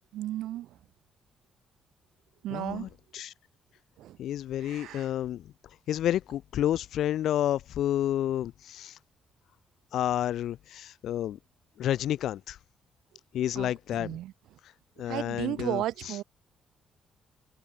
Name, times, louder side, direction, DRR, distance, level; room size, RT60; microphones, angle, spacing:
voice 1, 0.1-0.7 2.4-2.9 4.0-4.2 4.6-5.1 13.5-14.3 15.0-16.2, right 14 dB, 85° right, 1.6 m, -34 dB
voice 2, 2.5-3.3 4.2-5.5 5.9-8.9 9.9-11.4 11.8-12.6 13.3-14.2 15.0-15.8, left 11 dB, 75° left, 3.7 m, -30 dB
cardioid pair, 90°, 0 cm